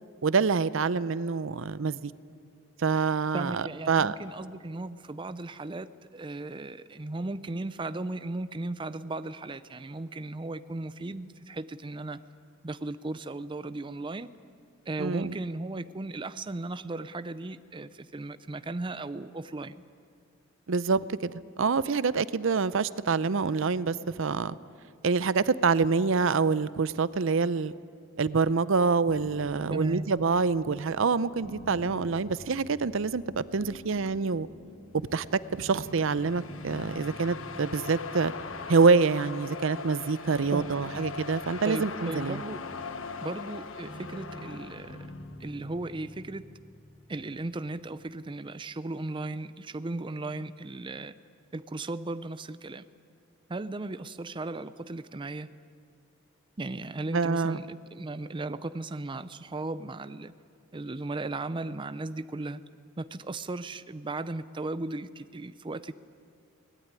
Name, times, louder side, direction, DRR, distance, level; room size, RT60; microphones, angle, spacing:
voice 1, 0.2-2.1 2.8-4.1 15.0-15.3 20.7-21.3 21.6-24.6 25.0-27.7 28.2-34.5 34.9-38.3 38.7-42.4 57.1-57.6, right 4 dB, 65° right, 17 dB, 0.6 m, -26 dB
voice 2, 3.3-12.2 12.6-14.3 14.9-19.8 29.7-30.1 40.5-41.0 41.6-42.6 43.2-45.1 45.4-46.5 47.1-51.1 51.5-52.9 53.5-55.5 56.6-60.3 60.7-62.6 63.0-65.9, right 2 dB, 25° right, 13 dB, 0.5 m, -36 dB
sound 1, 29.1-48.0, equal, 45° left, 5.3 m, -48 dB
sound 2, 35.4-45.3, left 5 dB, 70° left, 1.2 m, -41 dB
23.0 x 19.0 x 9.8 m, 2.2 s
head